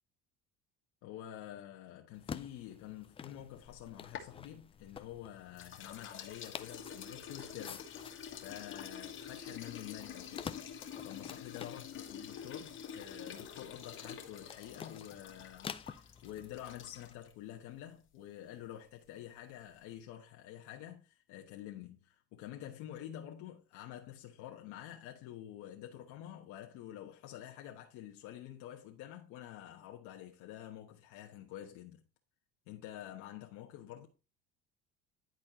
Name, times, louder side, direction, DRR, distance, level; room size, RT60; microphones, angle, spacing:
voice 1, 1.0-7.9 8.1-32.0 32.7-34.1, left 12 dB, 75° left, 1.2 m, -48 dB
sound 1, 2.1-17.1, left 7 dB, 20° left, 0.4 m, -50 dB
sound 2, 3.7-5.2 5.6-17.3, left 8 dB, 40° left, 1.5 m, -48 dB
10.5 x 4.3 x 4.2 m
cardioid pair, 130°, 30 cm